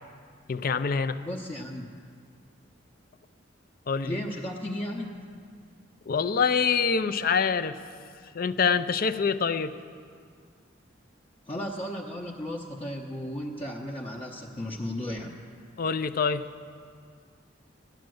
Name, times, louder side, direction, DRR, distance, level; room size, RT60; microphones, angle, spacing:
voice 1, 0.5-1.2 3.9-4.2 6.1-7.8 8.3-9.7 15.8-16.4, left 5 dB, 50° left, 12 dB, 0.5 m, -25 dB
voice 2, 1.2-1.8 4.0-5.3 11.5-15.4, left 1 dB, 30° left, -3 dB, 0.8 m, -35 dB
12.5 x 10.5 x 7.8 m, 2.2 s
head